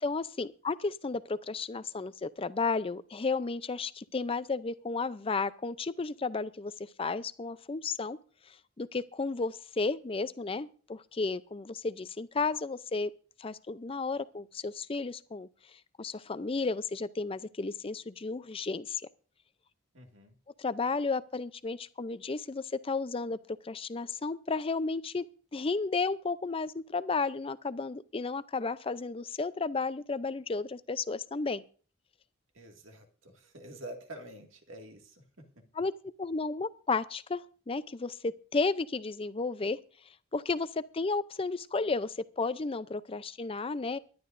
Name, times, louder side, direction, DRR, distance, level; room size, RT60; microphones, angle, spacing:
voice 1, 0.0-8.2 8.8-13.1 13.4-15.5 16.0-19.0 20.6-23.4 23.6-25.3 25.5-31.6 35.8-35.9 36.2-39.8 40.3-44.0, left 4 dB, 30° left, 0.5 m, -33 dB
voice 2, 19.9-20.4 32.5-35.5, right 1 dB, 70° right, 2.1 m, -47 dB
23.5 x 11.5 x 2.6 m
head